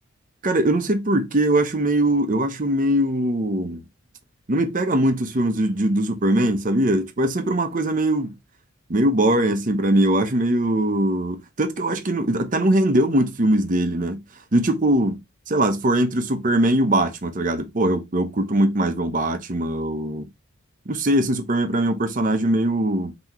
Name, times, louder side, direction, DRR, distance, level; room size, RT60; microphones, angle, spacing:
voice 1, 0.4-3.8 4.5-8.3 8.9-14.2 14.5-15.2 15.5-20.3 20.9-23.1, right 1 dB, 40° right, 0.8 m, -21 dB
5.7 x 3.0 x 3.0 m
head